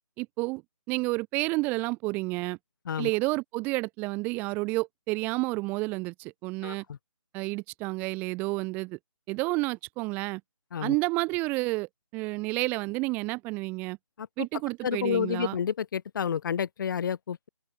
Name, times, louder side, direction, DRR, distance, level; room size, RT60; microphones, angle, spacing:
voice 1, 0.2-0.6 0.9-2.6 3.0-6.8 7.3-9.0 9.3-10.4 10.8-14.0 14.4-15.6, right 24 dB, 10° right, 1.0 m, -30 dB
voice 2, 6.6-7.0 10.7-11.0 14.2-14.3 14.8-17.5, left 8 dB, 35° left, 3.5 m, -30 dB
open air
figure-of-eight pair, 155°, 18 cm